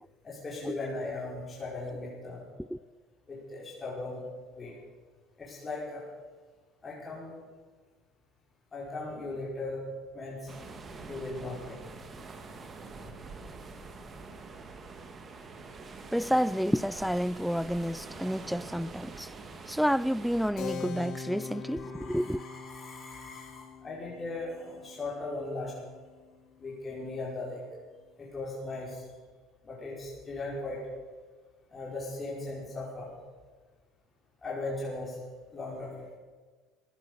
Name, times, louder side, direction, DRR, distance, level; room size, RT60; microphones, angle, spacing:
voice 1, 0.2-2.4 3.3-4.2 4.5-4.7 5.4-6.0 6.8-7.3 8.7-9.8 10.1-10.5 11.1-11.8 21.8-25.7 26.6-27.6 28.2-29.0 29.6-30.8 31.7-33.1 34.4-36.0, left 2 dB, 25° left, 5.1 m, -38 dB
sound 1, 10.5-20.5, right 3 dB, 30° right, 1.9 m, -45 dB
voice 2, 16.1-19.3 19.7-22.4, equal, ahead, 0.4 m, -29 dB
Keyboard (musical), 20.6-26.7, left 4 dB, 60° left, 3.4 m, -43 dB
16.0 x 11.5 x 7.0 m
supercardioid pair, 110°, 0 cm